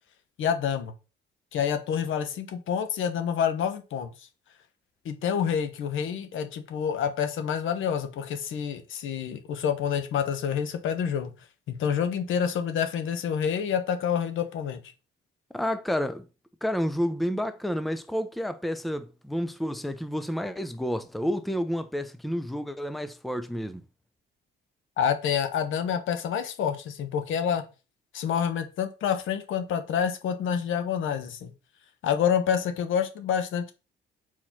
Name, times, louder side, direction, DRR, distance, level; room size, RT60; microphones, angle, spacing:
voice 1, 0.4-0.9 1.5-4.1 5.0-11.3 11.7-14.8 25.0-27.6 28.1-31.5 32.0-33.7, left 8 dB, 80° left, 1.1 m, -28 dB
voice 2, 15.5-16.3 16.6-23.8, equal, ahead, 0.6 m, -30 dB
4.7 x 4.3 x 5.8 m
cardioid pair, 90°, 20 cm